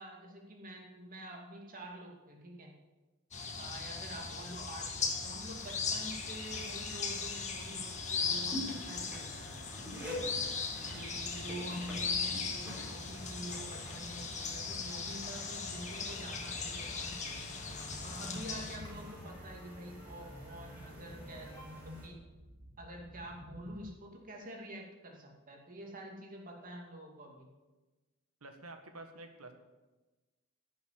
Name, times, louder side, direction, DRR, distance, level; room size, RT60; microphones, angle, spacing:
voice 1, 0.0-2.8 3.6-9.7 10.8-17.4 18.0-22.2 22.8-27.5, right 1 dB, 40° right, 0 dB, 2.5 m, -47 dB
sound 1, 3.3-18.8, left 5 dB, 35° left, 1.8 m, -38 dB
sound 2, 5.6-22.1, left 1 dB, 10° right, 4.2 m, -47 dB
sound 3, 17.7-23.8, equal, 15° left, 3.1 m, -55 dB
voice 2, 28.4-29.5, right 2 dB, 90° right, 6 dB, 1.7 m, -49 dB
11.5 x 6.9 x 9.7 m, 1.2 s
head